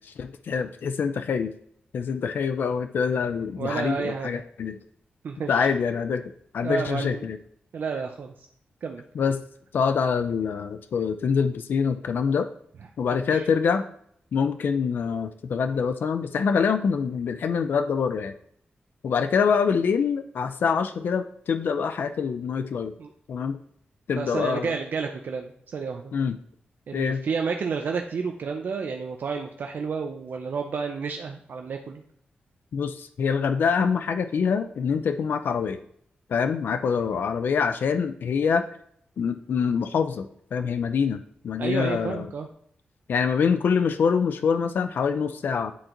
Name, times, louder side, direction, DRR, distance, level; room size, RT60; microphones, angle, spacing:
voice 1, 0.0-1.5 1.9-4.8 5.5-6.2 6.5-7.4 9.1-9.4 9.7-12.5 13.0-13.8 14.3-18.3 19.0-22.9 23.3-23.6 24.1-24.7 26.1-26.4 26.9-27.2 32.7-35.8 36.3-38.6 39.2-42.3 43.1-45.7, left 6 dB, 65° left, 9 dB, 0.4 m, -25 dB
voice 2, 3.6-4.4 5.2-5.7 6.6-7.3 7.7-8.5 8.8-9.0 13.3-13.5 23.0-23.1 24.1-26.1 26.9-32.0 41.6-42.5, right 5 dB, 60° right, 3 dB, 0.5 m, -31 dB
9.9 x 3.8 x 2.9 m, 0.67 s
wide cardioid pair, 170°, 4 cm